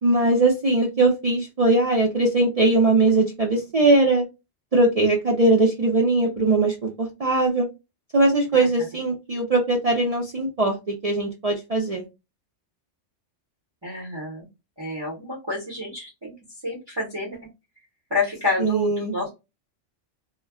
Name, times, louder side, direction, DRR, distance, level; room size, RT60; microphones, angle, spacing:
voice 1, 0.0-4.3 4.7-7.7 8.1-12.0 18.6-19.1, right 2 dB, 50° right, 0 dB, 0.4 m, -20 dB
voice 2, 13.8-14.5 14.8-16.3 16.6-17.4 18.1-19.3, left 2 dB, 25° right, -3 dB, 0.8 m, -29 dB
2.2 x 2.1 x 3.4 m, 0.25 s
omnidirectional pair, 1.2 m